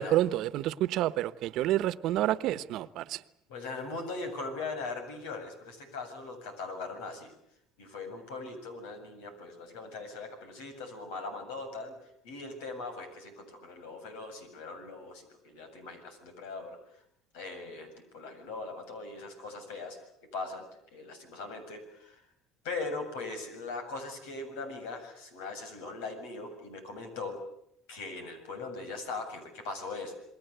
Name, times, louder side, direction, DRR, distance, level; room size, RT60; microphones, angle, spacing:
voice 1, 0.0-3.2, right 14 dB, 60° right, 1.1 m, -29 dB
voice 2, 3.5-7.3 7.8-11.9 12.2-16.8 17.3-20.0 20.3-22.2 22.6-27.4 27.9-30.1, left 3 dB, 90° left, 7.8 m, -40 dB
29.0 x 21.0 x 8.2 m
cardioid pair, 115°, 0 cm